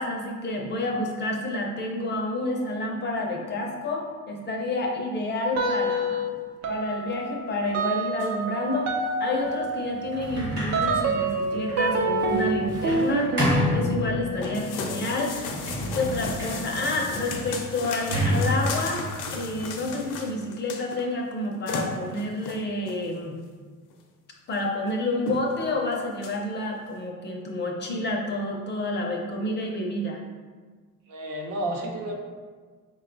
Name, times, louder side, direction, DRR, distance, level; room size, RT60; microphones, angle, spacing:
voice 1, 0.0-6.3 6.7-8.9 9.2-13.4 13.7-15.4 15.9-23.4 24.5-30.2, left 2 dB, 35° left, 0 dB, 0.5 m, -29 dB
sound 1, 5.5-6.3 6.6-17.0, right 2 dB, 55° right, 0.6 m, -29 dB
sound 2, 8.2-8.3 8.8-9.0 9.3-9.4 10.0-10.1 10.5-11.0 11.4-11.6 11.8-11.9 12.3-12.4 12.7-13.6 14.4-21.1 21.4-21.5 21.7-23.0 23.9-24.0 24.5-24.6 24.9-25.0 25.3-25.6 25.9-26.4, left 4 dB, 70° left, 0.6 m, -36 dB
Sliding door, 10.1-14.6 15.2-20.1, equal, 35° right, 1.1 m, -30 dB
voice 2, 31.1-32.1, right 1 dB, 80° right, 0 dB, 0.8 m, -31 dB
4.9 x 2.2 x 3.8 m, 1.5 s
cardioid pair, 155°, 32 cm